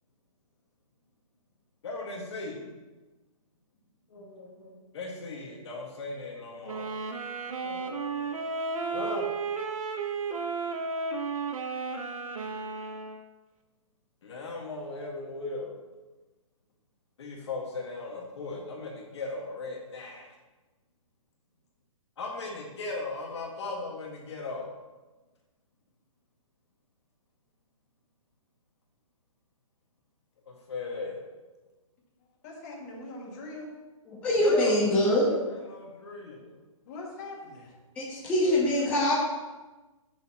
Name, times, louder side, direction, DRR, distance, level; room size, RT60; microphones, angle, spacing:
voice 1, 1.8-2.7 4.1-6.9 7.6-8.3 8.9-9.3 14.2-15.8 17.2-20.3 22.2-24.7 30.5-31.2 34.4-35.0 35.3-36.6 38.4-38.9, left 3 dB, 55° left, -1 dB, 1.8 m, -37 dB
sound 1, 6.7-13.2, right 4 dB, 80° right, 1.1 m, -33 dB
voice 2, 32.4-33.7 36.9-37.7, left 2 dB, 30° left, -3 dB, 2.2 m, -42 dB
voice 3, 34.2-35.3 37.9-39.1, left 1 dB, 10° left, -8 dB, 1.3 m, -24 dB
11.5 x 6.5 x 3.0 m, 1.2 s
hypercardioid pair, 165°, 18 cm